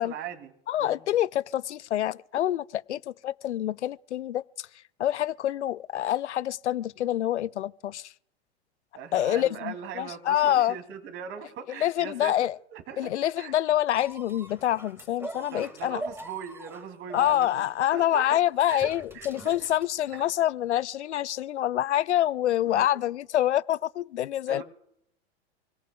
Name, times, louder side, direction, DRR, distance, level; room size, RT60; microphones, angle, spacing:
voice 1, 0.0-0.5 0.8-1.0 8.9-13.6 15.4-17.6 17.9-18.9 19.1-19.7 22.6-22.9 24.5-24.6, right 8 dB, 40° right, 2.7 m, -40 dB
voice 2, 0.7-4.7 5.0-8.1 9.1-10.7 11.8-12.6 13.0-16.0 17.1-24.6, left 12 dB, 85° left, 0.5 m, -26 dB
sound 1, 13.9-20.4 21.1-21.2, right 1 dB, 5° right, 2.5 m, -43 dB
29.5 x 18.0 x 2.3 m
hypercardioid pair, 95°, 34 cm